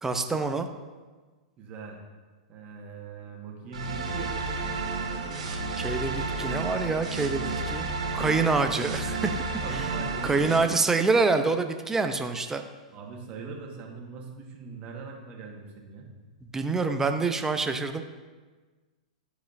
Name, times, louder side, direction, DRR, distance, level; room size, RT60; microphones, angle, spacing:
voice 1, 0.0-0.7 5.8-7.9 8.1-9.4 9.7-9.9 10.2-12.6 16.5-18.0, right 4 dB, 10° right, 6 dB, 0.6 m, -26 dB
voice 2, 1.6-2.0 2.5-4.4 9.6-10.4 12.9-16.1, right 4 dB, 35° right, 0 dB, 1.4 m, -41 dB
sound 1, 3.7-10.6, right 3 dB, 80° right, 2.1 m, -31 dB
12.0 x 4.9 x 2.6 m, 1.3 s
hypercardioid pair, 110°, 4 cm